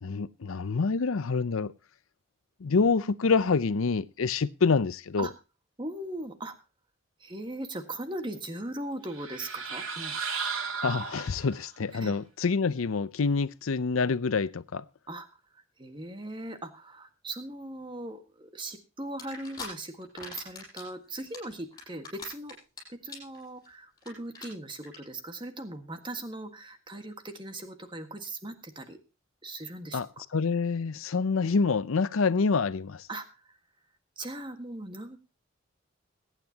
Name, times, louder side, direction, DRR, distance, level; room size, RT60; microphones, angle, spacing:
voice 1, 0.0-1.7 2.6-5.3 10.8-14.9 29.9-30.1 30.3-33.1, left 4 dB, 80° left, 0.6 m, -27 dB
voice 2, 5.8-6.5 7.2-10.2 11.9-12.2 15.1-15.3 15.5-22.6 22.9-29.0 29.4-30.2 33.1-33.6 34.2-35.2, right 1 dB, 25° right, 1.6 m, -39 dB
sound 1, 9.1-11.7, right 5 dB, 90° right, 2.4 m, -35 dB
sound 2, 19.2-19.7 20.0-20.9 21.2-22.8 23.1-23.4 23.6-23.7 24.0-24.1 24.3-24.5 24.8-25.0, left 4 dB, 20° left, 6.0 m, -41 dB
22.5 x 9.1 x 2.8 m
head